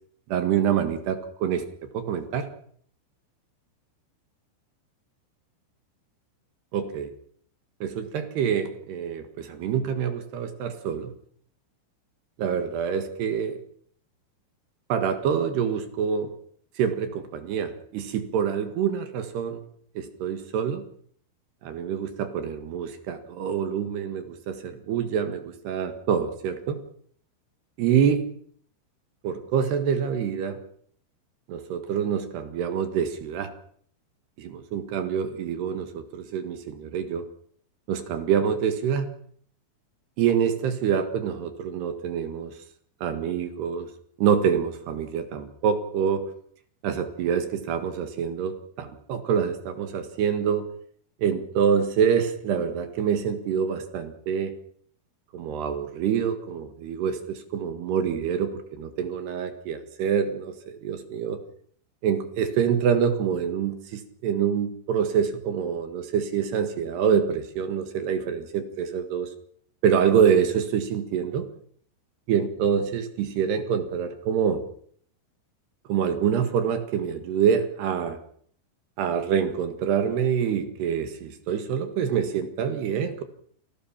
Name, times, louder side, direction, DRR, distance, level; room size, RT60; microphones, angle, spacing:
voice 1, 0.3-1.7 1.9-2.5 6.7-7.1 7.8-11.1 12.4-13.6 14.9-16.3 16.8-19.6 20.0-20.8 21.6-26.8 27.8-28.3 29.2-30.6 31.5-33.5 34.4-37.3 37.9-39.1 40.2-42.5 43.0-43.9 44.2-46.3 46.8-50.7 51.2-54.5 55.3-61.4 62.0-69.3 69.8-71.5 72.3-74.6 75.9-78.2 79.0-83.2, right 7 dB, 65° right, 8 dB, 3.5 m, -26 dB
28.0 x 18.5 x 5.9 m, 0.62 s
omnidirectional pair, 5.4 m